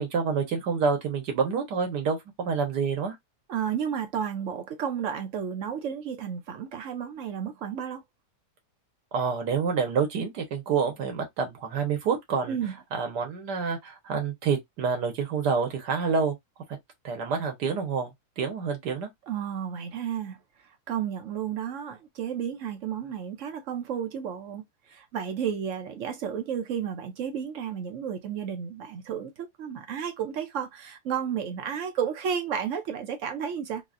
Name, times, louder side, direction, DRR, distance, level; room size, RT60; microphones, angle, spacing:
voice 1, 0.0-3.2 9.1-12.6 12.9-16.4 17.0-19.1, right 5 dB, 80° right, 1.6 m, -28 dB
voice 2, 3.5-8.0 12.5-12.7 19.3-20.4 20.9-24.6 24.9-33.8, right 8 dB, 65° right, 0.8 m, -32 dB
3.8 x 2.1 x 2.4 m
omnidirectional pair, 1.8 m